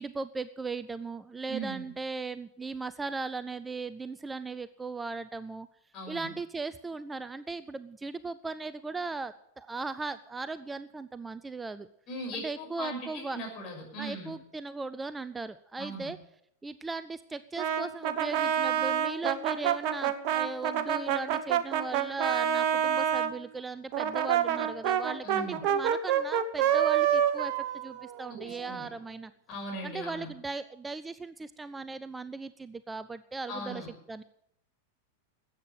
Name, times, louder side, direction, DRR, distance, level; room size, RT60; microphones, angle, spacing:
voice 1, 0.0-5.7 6.1-11.9 12.3-13.4 14.0-16.2 16.6-29.3 29.8-34.2, right 3 dB, 10° right, 14 dB, 0.5 m, -38 dB
voice 2, 1.5-1.9 5.9-6.3 12.1-14.3 15.8-16.1 25.2-25.6 28.3-28.9 29.5-30.3 33.5-33.9, right 1 dB, 35° left, 0 dB, 6.0 m, -39 dB
Brass instrument, 17.6-23.3 23.9-28.7, right 9 dB, 45° right, 1.0 m, -27 dB
13.0 x 8.6 x 9.2 m, 0.74 s
figure-of-eight pair, 95°, 0 cm